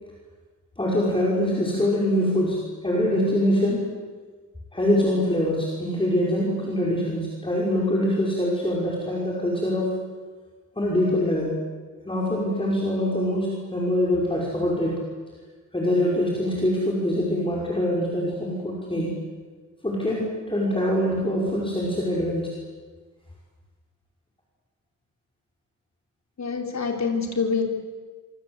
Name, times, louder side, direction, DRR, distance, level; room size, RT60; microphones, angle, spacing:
voice 1, 0.8-3.9 4.7-10.0 10.8-11.6 12.0-15.0 15.7-19.2 19.8-22.5, left 1 dB, 15° left, -4 dB, 5.8 m, -24 dB
voice 2, 26.4-27.6, left 5 dB, 55° left, 2 dB, 4.0 m, -26 dB
27.0 x 25.5 x 8.2 m, 1.4 s
wide cardioid pair, 125°, 33 cm